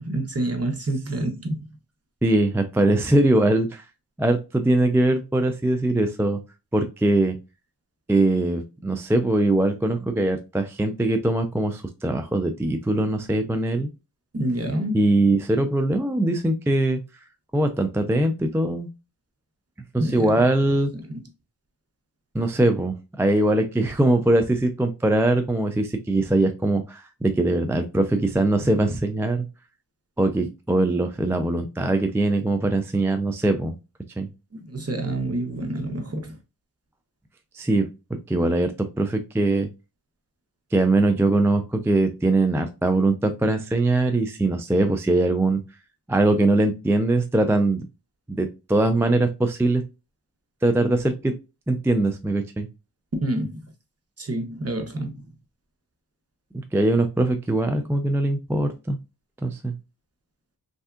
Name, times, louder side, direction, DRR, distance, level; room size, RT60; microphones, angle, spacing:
voice 1, 0.0-1.7 14.3-15.1 20.0-20.4 21.1-21.3 34.5-36.4 53.2-53.7 54.2-55.3, right 1 dB, 35° right, 1.0 m, -28 dB
voice 2, 2.2-3.8 4.2-6.4 6.7-7.4 8.1-13.9 14.9-17.0 17.5-18.9 19.9-20.9 22.3-29.5 30.2-33.8 34.2-34.3 37.5-37.9 38.3-39.7 40.7-45.6 46.1-47.9 48.3-49.8 50.6-51.3 51.7-52.7 56.7-59.0 59.4-59.7, right 2 dB, 5° right, 0.3 m, -22 dB
3.3 x 2.7 x 2.3 m
wide cardioid pair, 55°, 39 cm